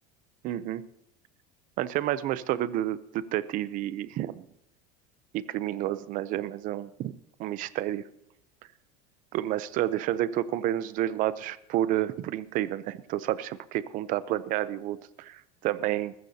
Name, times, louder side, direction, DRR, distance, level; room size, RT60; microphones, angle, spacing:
voice 1, 0.4-0.9 1.8-4.4 5.3-7.1 7.4-8.1 9.3-16.1, right 13 dB, 45° right, 16 dB, 0.6 m, -30 dB
20.0 x 14.5 x 2.8 m, 0.81 s
cardioid pair, 150°, 19 cm